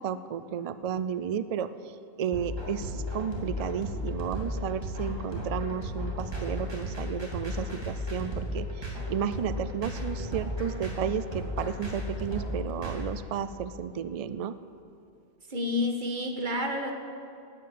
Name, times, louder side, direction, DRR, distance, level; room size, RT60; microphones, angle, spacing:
voice 1, 0.0-1.7 2.2-14.5, right 8 dB, 70° right, 13 dB, 0.3 m, -33 dB
sound 1, 2.3-13.0, left 1 dB, 20° right, 2.6 m, -34 dB
voice 2, 15.5-16.9, left 2 dB, 45° right, 3 dB, 1.6 m, -29 dB
11.5 x 9.4 x 8.4 m, 2.6 s
omnidirectional pair, 1.2 m